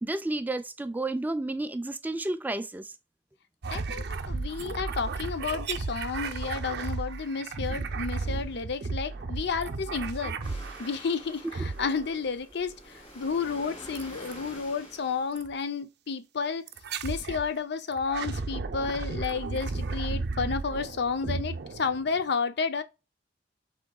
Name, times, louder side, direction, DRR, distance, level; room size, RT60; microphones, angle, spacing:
voice 1, 0.0-2.9, right 2 dB, 10° right, 0.3 m, -31 dB
sound 1, 3.6-11.1 11.5-12.3 14.0-14.4 15.4-15.5 16.7-17.5 17.9-22.3, right 3 dB, 60° right, 0.5 m, -34 dB
voice 2, 3.7-10.4 10.8-16.7 17.0-22.8, left 5 dB, 60° left, 0.6 m, -31 dB
sound 2, 10.4-15.6, equal, 35° left, 2.7 m, -47 dB
6.0 x 3.8 x 2.3 m
head